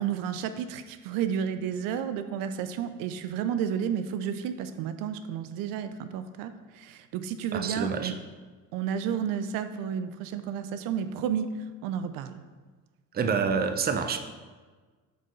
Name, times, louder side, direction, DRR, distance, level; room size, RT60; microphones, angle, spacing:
voice 1, 0.0-8.1 8.7-12.4, right 8 dB, 85° right, 10 dB, 0.5 m, -31 dB
voice 2, 7.5-8.1 13.1-14.2, right 5 dB, 30° right, 7 dB, 0.5 m, -27 dB
8.0 x 4.4 x 3.1 m, 1.4 s
cardioid pair, 100°, 33 cm